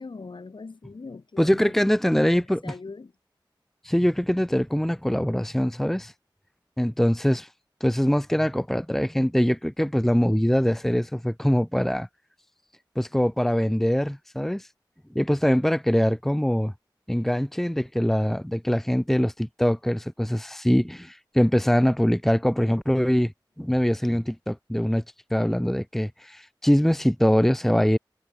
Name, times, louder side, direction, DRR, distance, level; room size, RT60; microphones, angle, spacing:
voice 1, 0.0-1.7 2.1-3.1, left 4 dB, 75° left, 3.6 m, -41 dB
voice 2, 1.4-2.7 3.8-6.1 6.8-7.5 7.8-12.1 13.0-14.7 15.1-16.7 17.1-23.3 23.6-25.0 25.3-28.0, equal, 5° left, 0.8 m, -23 dB
wide cardioid pair, 60°, 8 cm